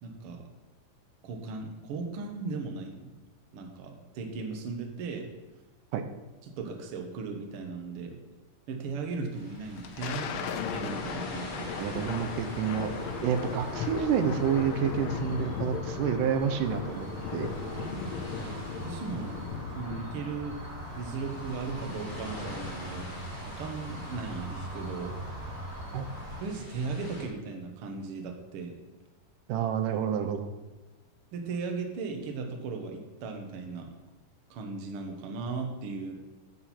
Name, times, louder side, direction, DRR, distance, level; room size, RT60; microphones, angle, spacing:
voice 1, 0.0-0.4 1.2-3.1 3.5-5.3 6.4-8.2 8.7-12.0 17.7-19.5 19.7-20.6 20.9-23.1 23.5-25.2 26.4-28.8 31.3-33.9 34.5-36.1, right 4 dB, 60° right, 3 dB, 1.5 m, -37 dB
sound 1, 9.3-27.3, left 2 dB, 50° left, 0.5 m, -45 dB
Thunder, 9.6-20.4, left 7 dB, 85° left, 1.5 m, -37 dB
sound 2, 11.7-26.4, right 1 dB, 25° right, 2.5 m, -41 dB
voice 2, 11.8-12.9 13.2-17.5 25.9-26.1 29.5-30.5, right 8 dB, 80° right, 8 dB, 2.2 m, -29 dB
8.7 x 7.4 x 4.3 m, 1.2 s
omnidirectional pair, 3.8 m